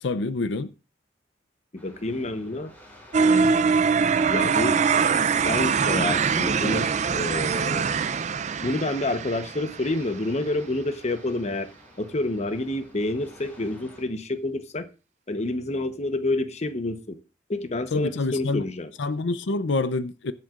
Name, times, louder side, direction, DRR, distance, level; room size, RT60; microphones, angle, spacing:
voice 1, 0.0-0.7 17.9-18.6 19.0-20.3, left 3 dB, 85° left, 0.6 m, -26 dB
voice 2, 1.7-2.7 3.2-3.7 4.3-4.8 5.3-7.9 8.6-11.7 12.0-14.9 15.3-17.2 17.5-18.9, left 2 dB, 40° left, 0.9 m, -28 dB
sound 1, 1.8-14.0, equal, 10° left, 4.0 m, -52 dB
sound 2, 3.1-10.1, right 5 dB, 40° right, 0.4 m, -23 dB
21.5 x 7.6 x 2.5 m
head